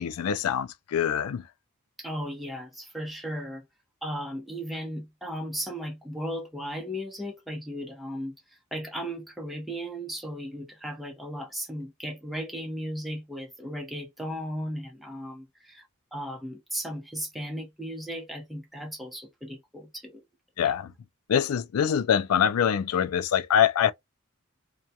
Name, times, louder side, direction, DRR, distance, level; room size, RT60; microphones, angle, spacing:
voice 1, 0.0-1.5 20.6-20.9 21.3-23.9, left 8 dB, 90° left, 0.4 m, -24 dB
voice 2, 2.0-3.6 4.0-8.4 8.7-15.9 16.1-20.2, equal, ahead, 0.7 m, -36 dB
2.3 x 2.2 x 2.7 m
head